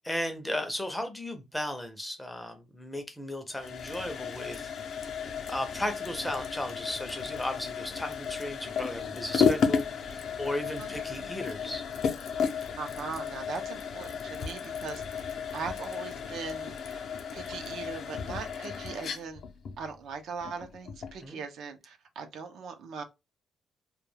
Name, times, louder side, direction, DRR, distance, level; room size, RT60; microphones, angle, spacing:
voice 1, 0.0-4.7 5.5-11.8 21.2-21.4, left 1 dB, 10° left, 0.5 m, -35 dB
sound 1, 3.5-21.2, left 6 dB, 60° left, 0.5 m, -33 dB
voice 2, 12.8-17.0 17.3-19.4 19.8-23.0, right 5 dB, 75° right, 0.5 m, -40 dB
2.2 x 2.2 x 3.1 m
cardioid pair, 150°, 0 cm